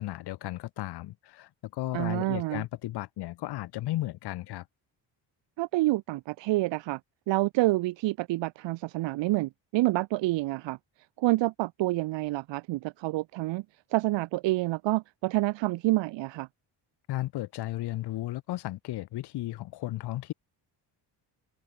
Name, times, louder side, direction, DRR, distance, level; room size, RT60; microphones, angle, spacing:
voice 1, 0.0-4.6 17.1-20.3, left 16 dB, 65° left, 1.1 m, -34 dB
voice 2, 1.9-2.6 5.6-7.0 7.3-10.8 11.2-13.6 13.9-16.5, right 19 dB, 85° right, 1.1 m, -28 dB
cardioid pair, 155°, 42 cm